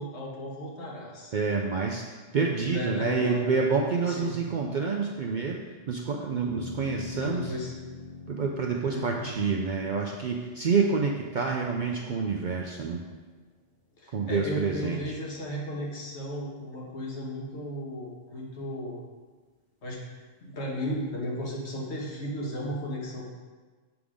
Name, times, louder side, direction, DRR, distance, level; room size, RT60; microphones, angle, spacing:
voice 1, 0.0-1.3 2.7-3.5 4.1-4.4 7.2-7.7 8.9-9.3 14.0-19.0 19.8-20.0 20.4-23.3, equal, 65° left, -3 dB, 1.5 m, -34 dB
voice 2, 1.3-2.1 2.3-7.5 8.3-13.0 14.1-15.2, right 5 dB, 60° right, 0 dB, 0.5 m, -28 dB
sound 1, 6.4-13.0, left 3 dB, 20° left, 1.4 m, -43 dB
7.0 x 3.7 x 5.0 m, 1.4 s
omnidirectional pair, 1.2 m